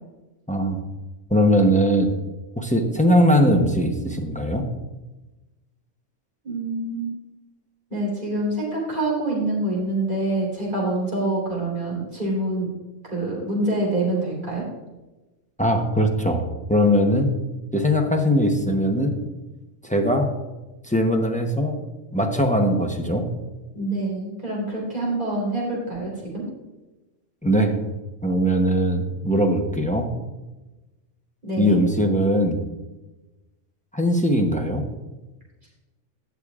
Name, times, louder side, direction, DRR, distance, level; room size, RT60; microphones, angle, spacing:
voice 1, 0.5-0.8 1.3-2.1 2.6-4.7 15.6-17.3 17.7-19.2 19.8-20.3 20.8-21.8 22.1-23.3 27.4-27.7 28.2-30.1 31.6-32.6 33.9-34.8, equal, 10° left, 3 dB, 0.7 m, -20 dB
voice 2, 6.4-7.2 7.9-12.7 13.1-14.6 23.7-26.4 31.4-31.8, right 2 dB, 40° right, -5 dB, 3.9 m, -26 dB
18.0 x 6.6 x 2.4 m, 1.1 s
omnidirectional pair, 1.3 m